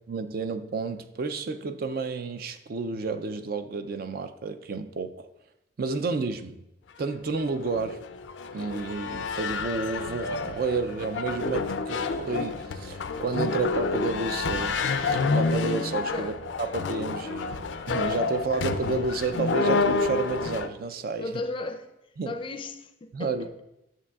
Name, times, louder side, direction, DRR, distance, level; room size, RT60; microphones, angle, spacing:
voice 1, 0.1-5.3 5.8-6.6 7.0-8.0 8.5-16.3 16.6-21.3 22.2-22.3 23.1-23.6, right 4 dB, 55° right, 0.4 m, -31 dB
sound 1, 7.2-20.7, left 4 dB, 85° left, 0.4 m, -29 dB
voice 2, 21.2-21.9 22.2-23.5, left 2 dB, 30° left, 0.4 m, -35 dB
11.0 x 6.8 x 2.3 m
head